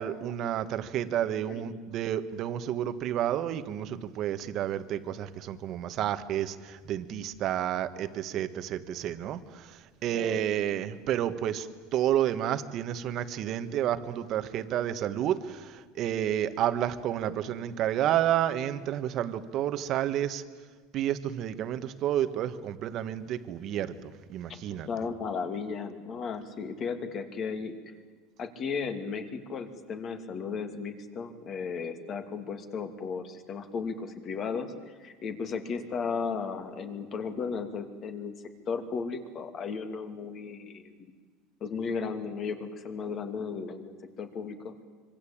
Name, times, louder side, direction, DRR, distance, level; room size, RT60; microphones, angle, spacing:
voice 1, 0.0-20.4 20.9-24.9, right 11 dB, 45° right, 10 dB, 1.6 m, -30 dB
voice 2, 1.1-1.8 10.1-10.5 24.7-27.7 28.4-38.3 38.7-41.1 41.6-44.7, left 5 dB, 35° left, 7 dB, 2.7 m, -35 dB
26.0 x 24.5 x 8.8 m, 1.5 s
supercardioid pair, 145°, 0 cm